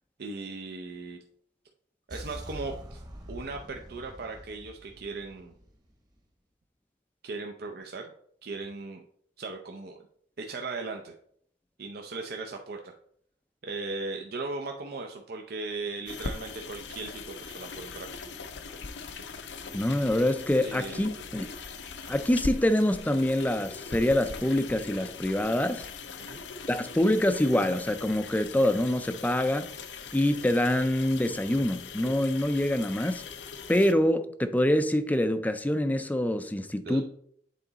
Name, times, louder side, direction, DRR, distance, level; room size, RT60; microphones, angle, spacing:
voice 1, 0.2-1.2 2.1-3.0 3.3-5.5 7.2-8.1 8.4-9.0 9.4-10.0 10.4-11.1 11.8-12.9 13.6-18.1 20.6-21.3 26.2-26.4 36.8-37.1, right 3 dB, 60° right, 0.6 m, -38 dB
sound 1, 2.1-6.2, equal, 25° right, 1.1 m, -45 dB
sound 2, 16.1-33.9, left 5 dB, 80° left, 0.6 m, -41 dB
voice 2, 19.7-21.5 22.1-25.9 26.7-29.7 30.1-33.2 33.7-37.1, left 1 dB, 10° left, 0.4 m, -25 dB
8.3 x 3.9 x 4.0 m
head